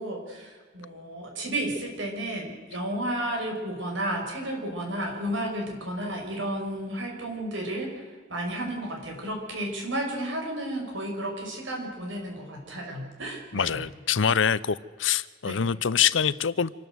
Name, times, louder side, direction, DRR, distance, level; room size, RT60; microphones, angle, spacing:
voice 1, 0.0-8.0 8.3-13.9 15.4-15.7, right 1 dB, 90° right, 1 dB, 5.8 m, -32 dB
voice 2, 13.5-16.7, left 7 dB, 85° left, 19 dB, 0.7 m, -25 dB
27.0 x 12.0 x 7.9 m, 1.5 s
head